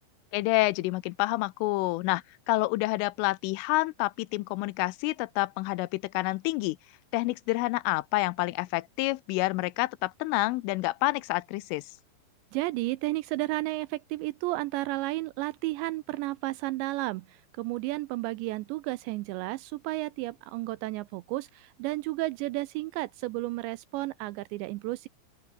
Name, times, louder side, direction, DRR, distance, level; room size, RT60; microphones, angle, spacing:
voice 1, 0.3-6.8 7.1-11.8, left 21 dB, 90° left, 3.3 m, -28 dB
voice 2, 12.5-25.1, right 19 dB, 80° right, 2.6 m, -32 dB
open air
omnidirectional pair, 5.6 m